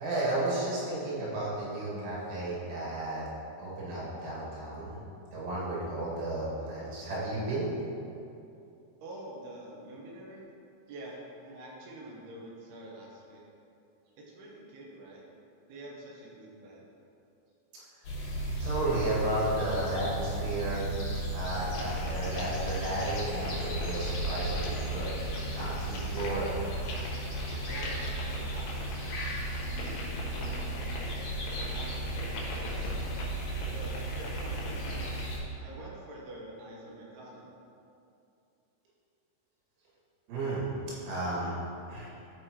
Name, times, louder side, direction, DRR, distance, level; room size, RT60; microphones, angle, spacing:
voice 1, 0.0-3.3 3.6-5.0 5.3-7.7 18.6-20.9 21.3-25.1 25.5-26.5 40.3-40.7 41.0-41.6 41.9-42.1, right 1 dB, 85° right, -7 dB, 4.7 m, -33 dB
voice 2, 9.0-10.4 10.9-13.4 14.2-15.2 15.7-16.9 27.6-29.1 29.6-31.3 31.7-33.2 33.7-35.2 35.6-37.6, right 1 dB, 70° right, -4 dB, 2.8 m, -47 dB
sound 1, 18.0-35.4, right 1 dB, 55° left, 2.6 m, -35 dB
sound 2, 21.7-35.4, left 2 dB, 80° left, 3.8 m, -43 dB
13.5 x 5.4 x 3.1 m, 2.6 s
omnidirectional pair, 5.5 m